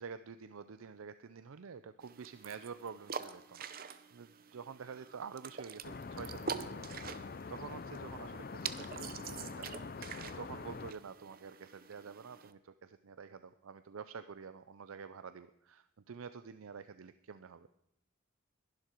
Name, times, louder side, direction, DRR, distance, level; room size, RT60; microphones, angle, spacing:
voice 1, 0.0-9.7 10.4-17.8, right 6 dB, 90° right, 12 dB, 0.5 m, -48 dB
sound 1, 2.0-12.5, right 6 dB, 45° right, 0.7 m, -46 dB
sound 2, 5.8-10.9, left 4 dB, 45° left, 0.5 m, -45 dB
21.0 x 11.5 x 4.5 m, 0.81 s
head